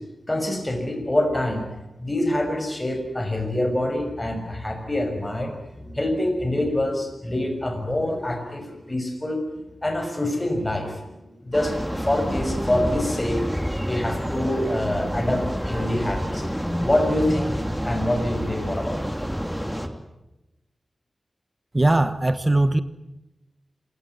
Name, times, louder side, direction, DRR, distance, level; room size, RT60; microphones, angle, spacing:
voice 1, 0.3-1.6 2.0-9.4 9.8-11.1 11.4-13.4 13.8-16.4 16.8-19.0, left 1 dB, 20° left, 6.3 m, -25 dB
sound 1, 11.5-19.9, equal, ahead, 2.6 m, -28 dB
voice 2, 21.7-22.8, right 2 dB, 25° right, 1.1 m, -19 dB
27.0 x 18.0 x 9.6 m
wide cardioid pair, 85°, 0 cm